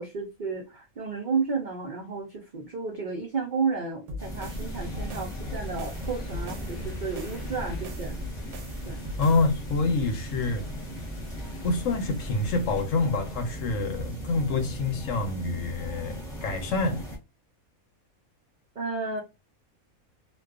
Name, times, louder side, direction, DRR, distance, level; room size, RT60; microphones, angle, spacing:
voice 1, 0.0-8.2 8.8-9.0 18.8-19.2, right 4 dB, 70° right, 0.4 m, -32 dB
sound 1, 4.1-9.6, left 1 dB, 85° right, 1.1 m, -41 dB
sound 2, 4.2-17.2, equal, 5° left, 0.6 m, -38 dB
sound 3, 4.4-12.8, equal, 50° left, 0.3 m, -40 dB
voice 2, 9.2-10.6 11.6-17.0, left 3 dB, 70° left, 0.9 m, -27 dB
2.4 x 2.2 x 2.3 m
omnidirectional pair, 1.5 m